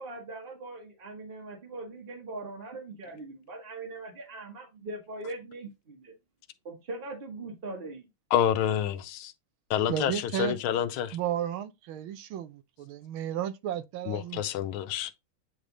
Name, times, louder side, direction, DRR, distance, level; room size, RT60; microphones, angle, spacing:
voice 1, 0.0-6.1 6.6-8.1, right 2 dB, 30° right, 1.2 m, -41 dB
voice 2, 8.3-9.3 9.7-11.2 14.1-15.1, left 10 dB, 90° left, 1.5 m, -28 dB
voice 3, 9.9-10.6 11.1-14.4, right 10 dB, 80° right, 1.5 m, -33 dB
8.7 x 3.3 x 3.8 m
omnidirectional pair, 2.3 m